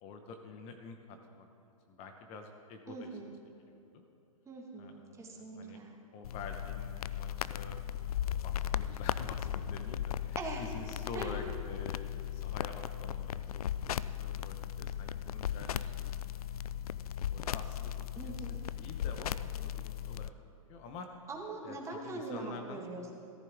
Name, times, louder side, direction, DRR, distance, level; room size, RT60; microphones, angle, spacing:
voice 1, 0.0-1.5 1.9-3.1 3.7-4.0 4.8-5.8 6.1-7.7 8.1-16.1 17.3-20.3 20.7-21.1 21.6-21.8 22.0-22.8, left 4 dB, 35° left, 5 dB, 1.0 m, -48 dB
voice 2, 2.9-3.3 4.4-5.9 10.4-10.6 11.1-11.4 18.2-18.6 21.3-23.1, right 3 dB, 15° right, 0 dB, 1.7 m, -42 dB
sound 1, 6.2-20.3, left 10 dB, 80° left, 0.4 m, -37 dB
14.0 x 13.5 x 3.6 m, 2.8 s
hypercardioid pair, 125°, 19 cm